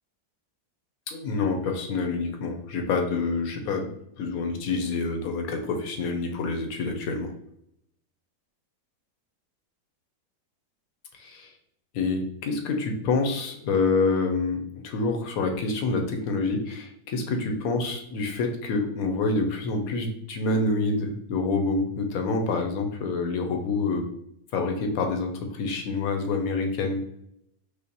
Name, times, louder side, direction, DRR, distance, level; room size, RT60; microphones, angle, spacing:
voice 1, 1.1-3.9 4.2-7.3 11.2-11.5 11.9-24.1 24.5-27.0, left 3 dB, 70° left, 4 dB, 1.0 m, -27 dB
5.1 x 2.1 x 2.8 m, 0.75 s
omnidirectional pair, 1.6 m